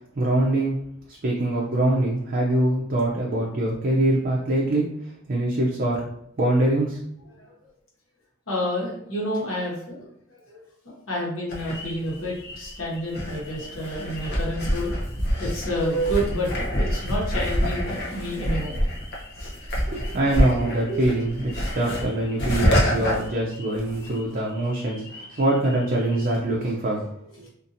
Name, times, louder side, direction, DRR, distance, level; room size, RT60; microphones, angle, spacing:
voice 1, 0.2-6.1 6.4-7.0 19.8-27.5, right 1 dB, 45° right, -3 dB, 0.5 m, -24 dB
voice 2, 8.5-10.0 10.3-10.6 11.1-14.9 15.4-18.8 19.4-19.5 19.8-20.2 20.9-21.1, equal, 85° left, -4 dB, 1.1 m, -29 dB
sound 1, 11.5-24.2 24.5-26.3, equal, 55° left, 0.7 m, -28 dB
2.7 x 2.5 x 2.6 m, 0.75 s
head